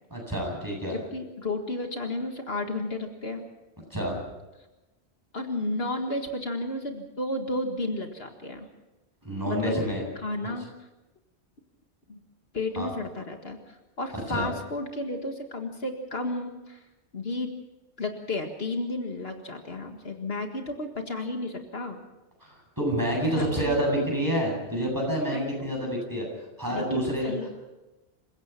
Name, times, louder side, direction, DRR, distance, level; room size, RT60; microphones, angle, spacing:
voice 1, 0.1-1.0 3.9-4.2 9.2-10.0 12.8-12.9 14.3-14.5 22.4-26.3 26.6-27.5, equal, 20° right, 0 dB, 7.9 m, -28 dB
voice 2, 0.9-3.4 5.3-8.7 9.5-9.8 10.2-10.7 12.1-12.2 12.5-16.8 17.1-17.5 18.0-22.0 23.2-24.0 25.3-25.7 26.7-27.5, left 2 dB, 65° left, 4 dB, 2.1 m, -32 dB
28.0 x 16.5 x 5.9 m, 1.0 s
omnidirectional pair, 1.1 m